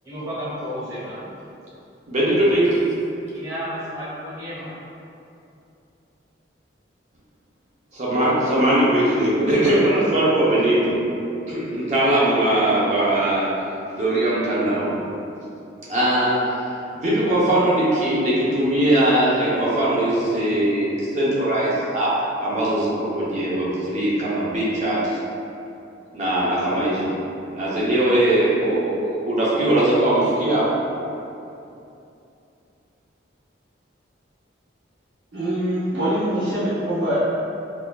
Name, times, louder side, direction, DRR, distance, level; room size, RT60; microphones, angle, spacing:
voice 1, 0.0-1.3 3.3-4.7, equal, 20° right, -11 dB, 1.1 m, -32 dB
voice 2, 2.1-2.9 7.9-11.0 11.5-13.5 13.9-15.0 15.9-16.4 16.9-22.1 22.4-25.2 26.1-27.1 27.5-30.6, right 1 dB, 40° right, -8 dB, 0.7 m, -20 dB
voice 3, 35.3-37.3, equal, 70° right, -13 dB, 0.8 m, -23 dB
4.1 x 2.6 x 2.3 m, 2.7 s
head